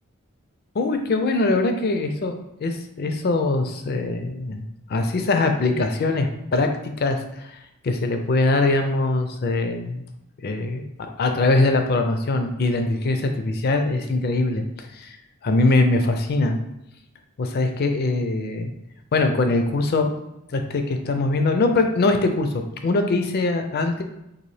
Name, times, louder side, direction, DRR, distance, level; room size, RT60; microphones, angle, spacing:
voice 1, 0.7-4.6 4.9-7.2 7.4-7.5 7.8-10.0 10.4-15.2 15.4-16.6 17.4-18.7 19.1-20.1 20.5-24.0, left 2 dB, 50° left, 6 dB, 0.4 m, -22 dB
4.0 x 2.5 x 3.2 m, 0.86 s
head